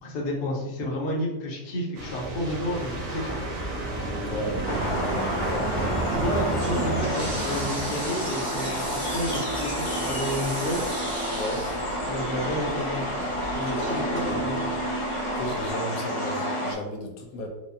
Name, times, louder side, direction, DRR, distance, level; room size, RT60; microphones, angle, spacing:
voice 1, 0.0-3.4 6.1-10.8 12.1-13.0 13.5-14.6, equal, 55° left, -2 dB, 0.9 m, -31 dB
sound 1, 1.9-13.5, right 2 dB, 85° right, 1.5 m, -33 dB
voice 2, 4.3-4.6 5.1-6.1 11.3-11.7 14.2-14.4 15.4-17.5, left 1 dB, 85° left, 2 dB, 1.2 m, -35 dB
sound 2, 4.6-16.7, equal, 35° left, 0.5 m, -30 dB
Toilet flush, 6.4-15.7, right 2 dB, 55° right, 1.7 m, -36 dB
4.8 x 2.1 x 2.6 m, 0.98 s
omnidirectional pair, 1.7 m